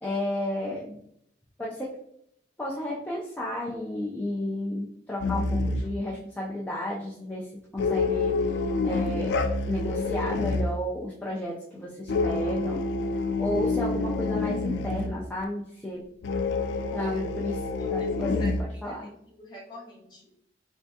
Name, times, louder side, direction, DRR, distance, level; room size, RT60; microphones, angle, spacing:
voice 1, 0.0-1.0 1.6-2.0 2.6-7.5 7.7-8.4 8.8-9.4 9.6-12.8 13.4-16.0 16.9-17.6 17.9-18.4 18.8-19.0, left 1 dB, 10° left, -5 dB, 0.5 m, -32 dB
sound 1, 5.2-6.0 7.8-10.8 12.1-15.2 16.2-18.6, left 3 dB, 75° left, 0.3 m, -27 dB
voice 2, 16.9-17.5 17.8-19.0 19.4-20.3, equal, 25° left, -4 dB, 1.1 m, -45 dB
3.5 x 3.4 x 2.7 m, 0.71 s
head